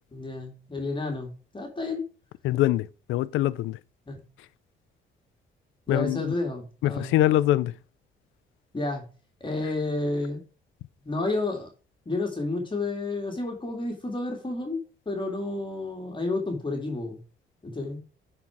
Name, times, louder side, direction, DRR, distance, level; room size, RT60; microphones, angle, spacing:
voice 1, 0.1-2.1 4.1-4.2 5.9-7.2 8.7-9.0 9.4-10.4 11.1-11.7 12.1-17.2 17.6-18.0, left 2 dB, 25° left, 2.2 m, -31 dB
voice 2, 2.4-3.8 5.9-6.3 6.8-7.7, left 14 dB, 85° left, 0.5 m, -24 dB
9.7 x 4.4 x 4.6 m
cardioid pair, 90°, 20 cm